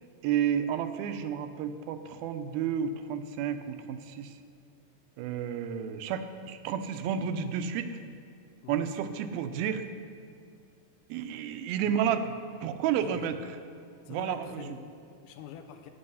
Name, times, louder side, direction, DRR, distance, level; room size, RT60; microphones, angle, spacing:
voice 1, 0.2-4.3 5.2-7.9 8.7-9.8 11.1-12.3 12.6-13.4 14.1-14.7, right 8 dB, 80° right, 9 dB, 2.5 m, -31 dB
voice 2, 11.8-12.2 13.0-13.3 14.1-15.9, left 8 dB, 75° left, 7 dB, 2.1 m, -46 dB
17.0 x 8.7 x 5.6 m, 2.3 s
omnidirectional pair, 4.4 m